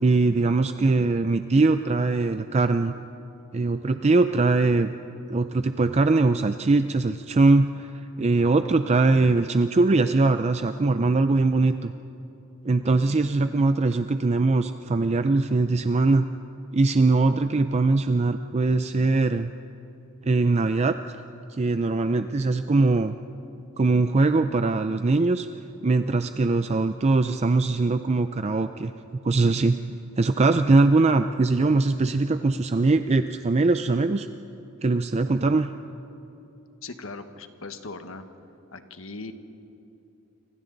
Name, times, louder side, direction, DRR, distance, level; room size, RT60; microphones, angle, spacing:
voice 1, 0.0-2.9 3.5-4.9 5.3-11.9 12.6-16.3 16.7-19.5 20.2-21.2 21.5-23.2 23.8-25.5 25.8-28.9 29.2-29.8 30.2-34.3 34.8-35.7, right 3 dB, 30° right, 9 dB, 0.5 m, -21 dB
voice 2, 36.8-38.2 38.7-39.3, left 3 dB, 65° left, 8 dB, 1.3 m, -39 dB
29.5 x 25.0 x 4.0 m, 2.9 s
head